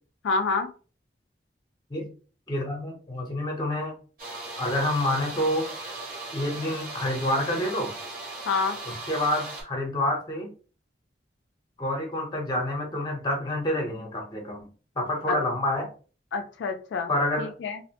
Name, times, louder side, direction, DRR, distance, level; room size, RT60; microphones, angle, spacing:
voice 1, 0.2-0.7 8.5-8.8 15.3-15.4 16.3-17.1 17.4-17.8, left 4 dB, 85° left, 6 dB, 0.3 m, -27 dB
voice 2, 2.5-4.0 4.6-5.7 6.3-7.9 9.1-10.5 11.8-14.7 14.9-15.9 17.1-17.5, left 1 dB, 25° left, 1 dB, 0.8 m, -28 dB
sound 1, 4.2-9.6, right 2 dB, 55° right, 1.2 m, -38 dB
2.6 x 2.1 x 2.8 m, 0.38 s
head